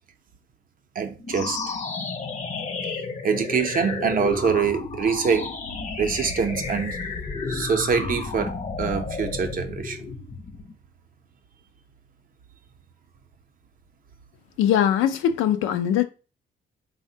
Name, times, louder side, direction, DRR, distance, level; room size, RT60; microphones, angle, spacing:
voice 1, 1.0-1.6 3.2-5.5 6.0-7.0 7.5-10.0, right 6 dB, 45° right, 0.5 m, -24 dB
sound 1, 1.2-10.7, left 4 dB, 35° left, 0.6 m, -32 dB
voice 2, 14.6-16.0, left 10 dB, 90° left, 0.4 m, -21 dB
3.4 x 2.1 x 2.7 m
cardioid pair, 90°, 20 cm